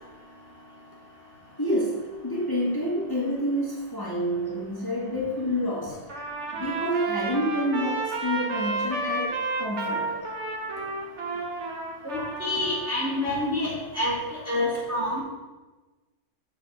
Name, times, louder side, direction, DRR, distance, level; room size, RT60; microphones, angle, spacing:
voice 1, 1.6-6.0 6.6-10.2, equal, 10° left, -7 dB, 1.7 m, -28 dB
Trumpet, 6.1-13.2, right 3 dB, 45° right, 1.3 m, -31 dB
voice 2, 12.0-14.1 14.5-15.2, left 1 dB, 10° right, -6 dB, 2.0 m, -27 dB
8.0 x 4.1 x 6.2 m, 1.2 s
omnidirectional pair, 1.9 m